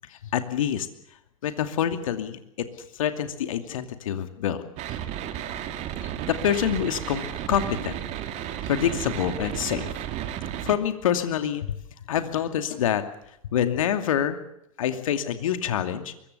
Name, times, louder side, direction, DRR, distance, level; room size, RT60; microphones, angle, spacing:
voice 1, 0.1-0.9 1.4-2.7 2.9-4.6 6.0-8.0 8.6-9.9 10.6-11.8 12.0-13.0 13.4-14.4 14.8-16.1, left 9 dB, 65° left, 8 dB, 2.6 m, -26 dB
sound 1, 4.8-10.8, right 10 dB, 40° right, 2.7 m, -33 dB
24.0 x 23.0 x 6.9 m, 0.77 s
hypercardioid pair, 100°, 18 cm